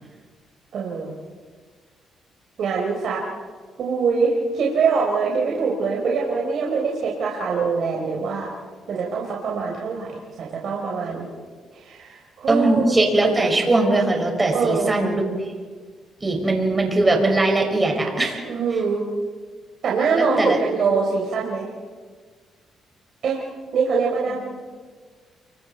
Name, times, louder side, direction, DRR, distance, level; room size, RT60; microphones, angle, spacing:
voice 1, 0.7-1.1 2.6-3.2 3.8-8.5 8.9-11.3 11.7-13.0 14.5-14.9 18.4-19.0 19.8-21.7 23.2-23.4 23.7-24.4, right 5 dB, 65° right, -3 dB, 4.3 m, -23 dB
voice 2, 12.5-15.5 16.2-18.4 20.4-20.6 24.3-24.4, right 2 dB, 20° right, 2 dB, 5.7 m, -20 dB
29.5 x 24.0 x 4.5 m, 1.5 s
cardioid pair, 90°, 0 cm